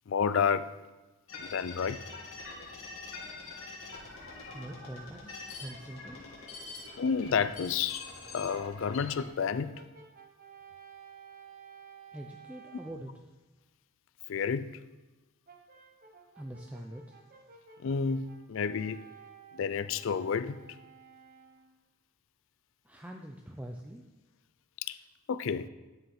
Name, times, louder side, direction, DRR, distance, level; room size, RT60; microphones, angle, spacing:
voice 1, 0.1-0.7 1.4-2.0 7.0-8.0 8.3-9.7 14.3-14.7 17.8-19.1 19.5-20.6 24.9-25.0 25.3-25.7, left 6 dB, 60° left, 13 dB, 0.4 m, -30 dB
sound 1, 1.3-9.3, left 3 dB, 75° left, 2.3 m, -45 dB
voice 2, 4.5-6.2 12.1-13.3 16.4-17.2 22.8-24.0, right 1 dB, 5° right, 2 dB, 0.5 m, -44 dB
Brass instrument, 8.5-13.1 15.5-21.8, right 6 dB, 40° right, 1.0 m, -54 dB
11.5 x 5.5 x 4.3 m, 1.2 s
head